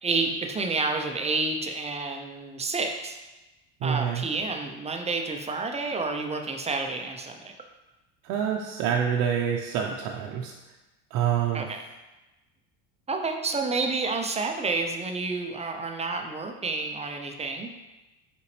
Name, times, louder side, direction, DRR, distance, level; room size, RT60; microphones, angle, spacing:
voice 1, 0.0-3.2 3.8-7.5 11.5-11.8 13.1-17.8, right 3 dB, 15° right, 4 dB, 0.6 m, -29 dB
voice 2, 3.8-4.2 8.2-10.5 11.1-11.7, right 8 dB, 55° right, 0 dB, 0.7 m, -27 dB
5.5 x 5.2 x 3.2 m, 1.1 s
supercardioid pair, 100°, 38 cm